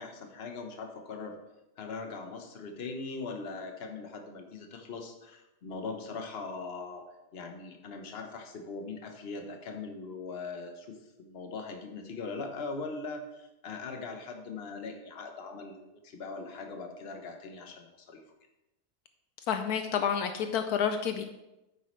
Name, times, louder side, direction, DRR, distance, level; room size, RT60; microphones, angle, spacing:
voice 1, 0.0-1.4 1.8-7.0 7.3-18.2, left 4 dB, 45° left, 4 dB, 1.2 m, -40 dB
voice 2, 19.5-21.2, left 7 dB, 80° left, 7 dB, 1.1 m, -29 dB
9.3 x 8.3 x 3.2 m, 0.97 s
omnidirectional pair, 1.6 m